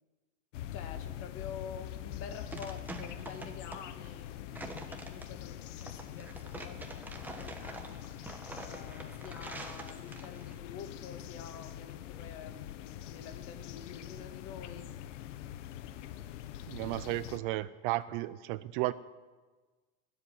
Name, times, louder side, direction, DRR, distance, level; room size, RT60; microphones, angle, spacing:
sound 1, 0.5-17.4, left 12 dB, 90° left, 1.0 m, -44 dB
voice 1, 0.7-7.1 7.3-8.1 8.6-14.9, left 7 dB, 40° left, 7 dB, 1.6 m, -48 dB
sound 2, 2.0-10.6, right 2 dB, 5° right, 1.0 m, -46 dB
voice 2, 16.7-18.9, right 18 dB, 45° right, 16 dB, 0.4 m, -34 dB
18.0 x 7.9 x 9.6 m, 1.3 s
supercardioid pair, 160°, 36 cm